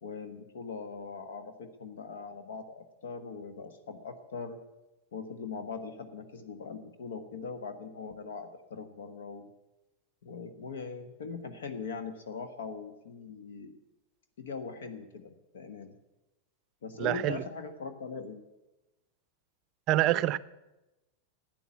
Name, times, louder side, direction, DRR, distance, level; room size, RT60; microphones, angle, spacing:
voice 1, 0.0-4.6 5.1-9.4 10.2-13.7 14.4-15.9 16.8-18.4, left 5 dB, 60° left, 8 dB, 1.3 m, -41 dB
voice 2, 17.0-17.4 19.9-20.4, right 14 dB, 40° right, 18 dB, 0.5 m, -26 dB
12.5 x 9.1 x 9.9 m, 1.0 s
figure-of-eight pair, 90°, 0 cm